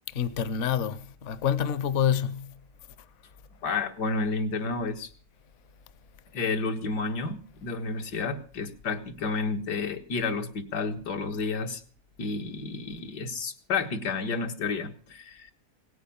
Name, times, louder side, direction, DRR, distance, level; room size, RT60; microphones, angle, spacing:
voice 1, 0.1-2.5, left 8 dB, 55° left, 1.0 m, -27 dB
voice 2, 3.6-5.1 6.3-11.8 12.2-15.5, left 4 dB, 80° left, 2.1 m, -31 dB
18.0 x 9.4 x 7.2 m
omnidirectional pair, 1.8 m